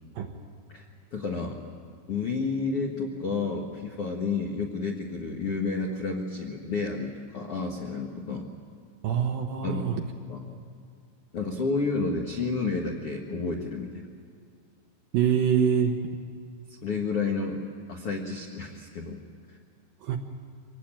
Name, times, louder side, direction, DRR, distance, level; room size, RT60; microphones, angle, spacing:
voice 1, 1.1-1.6 2.1-8.5 9.6-9.9 10.3-10.4 11.3-14.1 16.8-17.6 17.9-19.2 19.5-19.6, left 4 dB, 85° left, 1 dB, 1.2 m, -30 dB
voice 2, 9.0-10.0 15.1-16.0 20.0-20.2, right 8 dB, 70° right, 3 dB, 2.3 m, -24 dB
25.0 x 19.0 x 8.8 m, 2.2 s
omnidirectional pair, 5.4 m